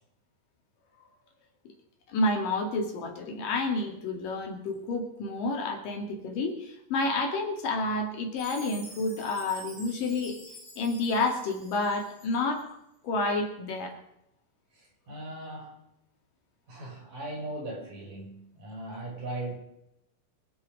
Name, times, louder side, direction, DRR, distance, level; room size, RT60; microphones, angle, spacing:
voice 1, 2.1-10.4 10.8-12.6 13.0-14.0, left 2 dB, 65° left, 3 dB, 3.9 m, -29 dB
Chime, 8.4-12.6, equal, 45° right, 8.0 m, -48 dB
voice 2, 14.7-15.8 16.7-19.5, right 1 dB, 60° right, -2 dB, 7.4 m, -38 dB
24.5 x 9.4 x 5.3 m, 0.81 s
omnidirectional pair, 4.2 m